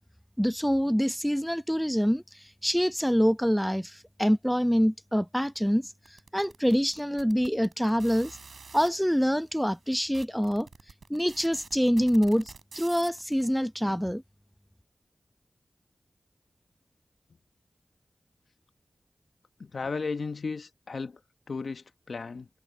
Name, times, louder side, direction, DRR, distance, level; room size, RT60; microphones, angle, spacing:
voice 1, 0.4-2.2 2.6-5.9 6.3-8.4 8.7-10.7 11.1-14.2, equal, ahead, 0.8 m, -25 dB
sound 1, 6.1-8.9 9.6-9.7 9.9-13.4, right 4 dB, 80° right, 3.6 m, -48 dB
voice 2, 19.6-21.2 21.5-22.5, left 4 dB, 75° left, 1.0 m, -35 dB
cardioid pair, 40°, 0 cm